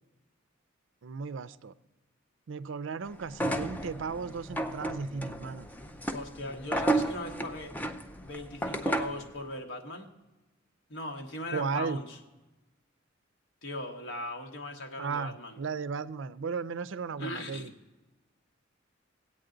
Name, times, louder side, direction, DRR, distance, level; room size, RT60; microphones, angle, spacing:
voice 1, 1.0-1.7 2.5-5.7 11.5-12.0 15.0-17.7, right 5 dB, 65° right, 14 dB, 0.4 m, -35 dB
sound 1, 3.3-9.3, right 1 dB, 10° left, 0.5 m, -33 dB
voice 2, 6.1-7.7 8.2-10.1 10.9-12.2 13.6-15.6 17.2-17.7, left 1 dB, 75° left, 3 dB, 1.3 m, -39 dB
17.0 x 8.5 x 3.8 m, 1.1 s
head